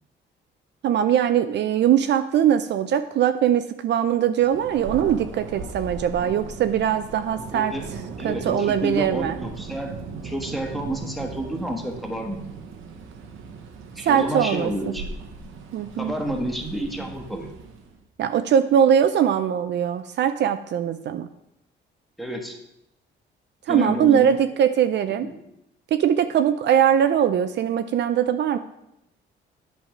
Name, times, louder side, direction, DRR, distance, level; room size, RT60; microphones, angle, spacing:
voice 1, 0.8-7.7 8.2-9.4 14.0-14.7 15.7-16.1 18.2-21.3 23.7-25.3 25.9-28.6, right 9 dB, 60° right, 10 dB, 0.4 m, -21 dB
Thunder, 4.4-18.0, right 5 dB, 90° right, 0.9 m, -38 dB
voice 2, 7.5-7.9 8.2-10.0 10.2-12.4 13.9-15.1 16.0-17.5 22.2-22.6 23.7-24.3 25.2-25.4, equal, ahead, 2 dB, 1.3 m, -29 dB
8.8 x 3.4 x 5.9 m, 0.81 s
cardioid pair, 90°, 20 cm